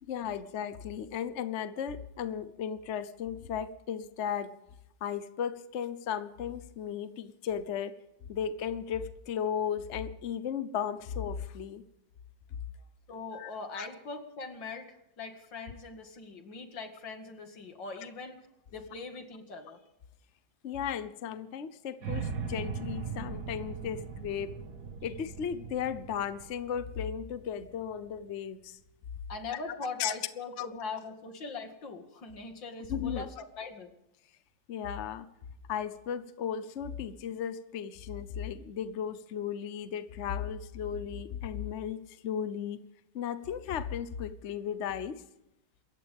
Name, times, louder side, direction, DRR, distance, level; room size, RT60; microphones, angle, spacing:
voice 1, 0.0-4.5 5.0-7.9 8.3-11.8 13.3-13.9 20.6-24.5 25.0-28.8 30.0-30.1 30.6-30.7 32.9-33.3 34.7-35.3 35.7-42.8 43.1-45.2, left 8 dB, 45° left, 12 dB, 1.1 m, -35 dB
voice 2, 13.1-18.4 18.7-19.8 29.3-33.3 33.6-33.9, left 3 dB, 85° left, 5 dB, 2.9 m, -41 dB
sound 1, 22.0-28.1, right 5 dB, 60° right, 2.0 m, -39 dB
27.5 x 14.5 x 3.6 m, 0.88 s
omnidirectional pair, 1.9 m